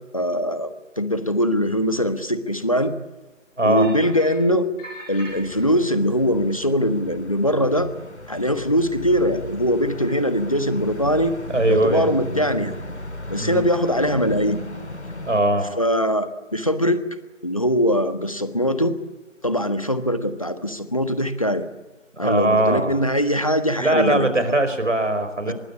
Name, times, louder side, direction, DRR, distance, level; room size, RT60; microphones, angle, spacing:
voice 1, 0.1-2.9 3.6-4.7 5.1-7.9 8.3-11.3 11.7-12.7 13.3-14.6 15.7-17.1 17.4-19.0 19.4-21.7 22.2-24.6 25.5-25.6, equal, 25° left, 11 dB, 1.4 m, -22 dB
sound 1, 3.7-4.4 4.8-5.8, equal, 5° left, 4.9 m, -40 dB
sound 2, 5.3-15.4, left 2 dB, 60° left, 2.4 m, -36 dB
voice 2, 11.5-12.1 13.4-13.6 15.3-15.7 22.2-23.0 23.8-25.5, right 2 dB, 70° right, 10 dB, 5.2 m, -20 dB
24.0 x 23.0 x 8.6 m, 1.2 s
figure-of-eight pair, 180°, 38 cm